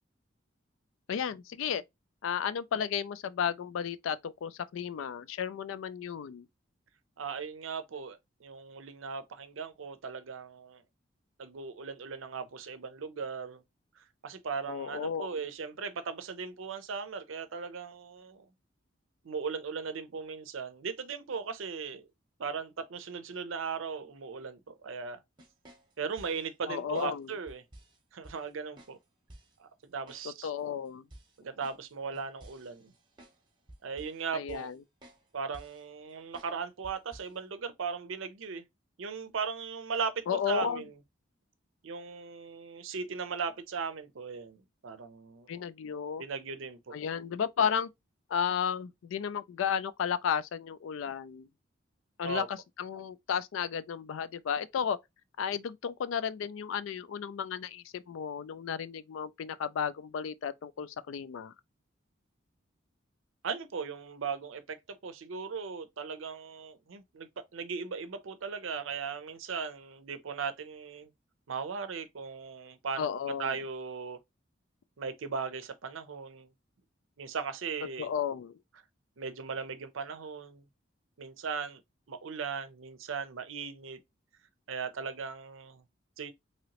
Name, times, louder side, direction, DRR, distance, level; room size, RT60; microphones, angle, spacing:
voice 1, 1.1-1.8 2.2-6.5 14.7-15.3 26.7-27.3 30.4-31.0 34.3-34.8 40.3-40.8 45.5-46.2 46.9-47.9 48.3-51.5 52.2-55.0 55.4-61.5 73.0-73.6 78.0-78.5, left 7 dB, 80° left, 0.3 m, -33 dB
voice 2, 7.2-10.8 11.4-13.6 14.0-18.4 19.2-22.1 22.4-25.2 26.0-27.6 28.1-29.0 29.6-30.5 31.4-32.9 33.8-34.7 35.3-38.6 39.0-41.0 41.8-45.5 46.2-47.0 52.2-52.5 63.4-71.1 71.5-74.2 75.0-76.5 77.2-78.1 79.2-80.6 81.2-81.8 82.1-84.0 84.7-85.8 86.2-86.3, right 5 dB, 80° right, 0.5 m, -38 dB
sound 1, 25.4-26.5 26.9-27.1 27.5-28.0 28.2-28.4 28.8-29.0 29.3-29.5 30.1-30.3 30.6-30.7 31.1-33.4 33.7-34.2 34.5-34.8 35.0-35.2 35.5-35.8 36.3-36.5 36.8-37.3, right 1 dB, 25° right, 0.8 m, -53 dB
3.0 x 2.9 x 2.9 m
head